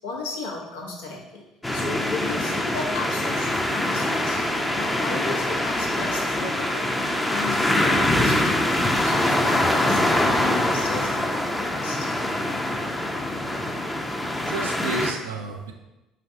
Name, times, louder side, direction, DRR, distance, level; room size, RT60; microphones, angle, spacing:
voice 1, 0.0-1.4 1.7-4.5 4.7-6.9 7.2-8.8 9.0-12.1, left 3 dB, 85° left, -2 dB, 0.8 m, -34 dB
sound 1, 1.6-15.1, left 1 dB, 10° left, 0.5 m, -24 dB
voice 2, 13.5-15.7, right 3 dB, 85° right, 4 dB, 0.4 m, -33 dB
5.0 x 3.3 x 2.6 m, 1.0 s
hypercardioid pair, 60°, 0 cm